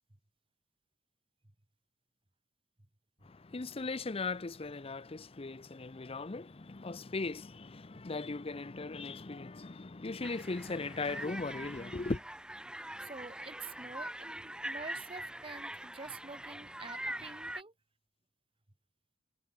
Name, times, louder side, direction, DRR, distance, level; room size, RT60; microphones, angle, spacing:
voice 1, 3.2-12.2, left 3 dB, 30° left, 0.6 m, -38 dB
sound 1, 10.2-17.6, right 1 dB, 5° right, 1.8 m, -43 dB
voice 2, 13.0-17.7, right 4 dB, 30° right, 1.5 m, -47 dB
head